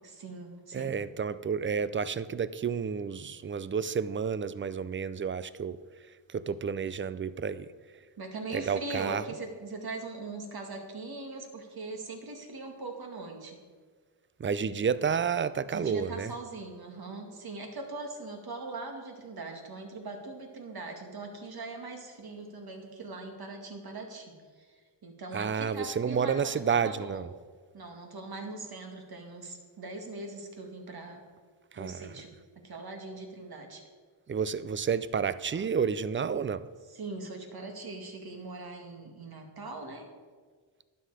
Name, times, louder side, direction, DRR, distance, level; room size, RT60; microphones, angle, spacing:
voice 1, 0.0-1.0 8.2-13.6 15.7-27.2 27.7-31.2 31.8-32.3 32.6-33.8 35.5-35.6 36.9-40.1, right 3 dB, 50° right, 2.1 m, -41 dB
voice 2, 0.7-5.8 6.3-7.7 8.5-9.2 14.4-16.3 25.3-27.3 31.7-32.1 34.3-36.7, right 6 dB, 30° right, 0.4 m, -30 dB
12.0 x 10.0 x 4.9 m
cardioid pair, 105°, 47 cm